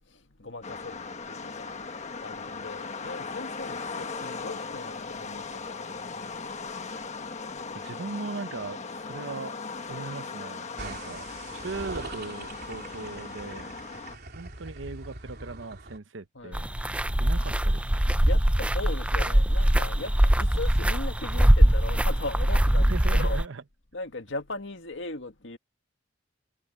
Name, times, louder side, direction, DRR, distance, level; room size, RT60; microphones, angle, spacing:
voice 1, 0.4-1.7 2.2-5.7 16.4-16.6 18.3-20.1 20.4-23.4 23.9-25.6, left 2 dB, 75° left, 2.1 m, -38 dB
sound 1, 0.6-14.2, left 4 dB, 40° left, 1.3 m, -38 dB
voice 2, 7.7-9.6 9.9-11.3 11.5-13.7 14.3-16.7 17.2-18.0 22.8-23.6, right 3 dB, 80° right, 0.9 m, -38 dB
sound 2, 10.8-16.0, right 3 dB, 60° right, 3.5 m, -42 dB
sound 3, 16.5-23.4, right 1 dB, 5° right, 0.5 m, -22 dB
head